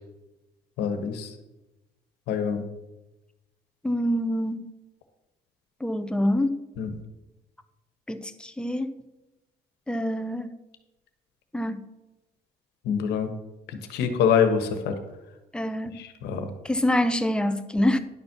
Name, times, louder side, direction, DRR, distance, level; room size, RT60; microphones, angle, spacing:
voice 1, 0.8-1.3 2.3-2.6 6.8-6.9 12.8-13.3 13.9-14.9 16.0-16.5, left 7 dB, 80° left, 8 dB, 1.3 m, -25 dB
voice 2, 3.8-4.7 5.8-6.6 8.1-8.9 9.9-10.5 11.5-11.8 15.5-16.0 16.6-18.0, left 1 dB, 5° left, 9 dB, 0.7 m, -26 dB
10.5 x 4.5 x 6.7 m, 1.0 s
cardioid pair, 110°, 17 cm